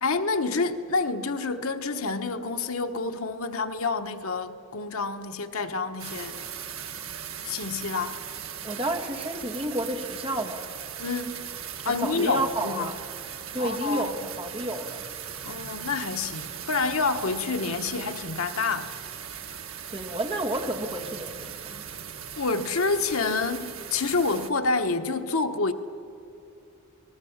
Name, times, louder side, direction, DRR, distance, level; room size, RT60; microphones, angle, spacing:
voice 1, 0.0-6.4 7.4-8.2 11.0-11.4 11.8-12.9 13.6-14.1 15.4-18.9 22.4-25.7, left 4 dB, 80° left, 1.2 m, -28 dB
sound 1, 6.0-24.5, right 8 dB, 70° right, 1.6 m, -39 dB
voice 2, 8.6-10.7 11.9-13.0 13.5-15.1 19.9-21.8, right 1 dB, 25° right, 2.1 m, -31 dB
29.0 x 20.0 x 7.3 m
head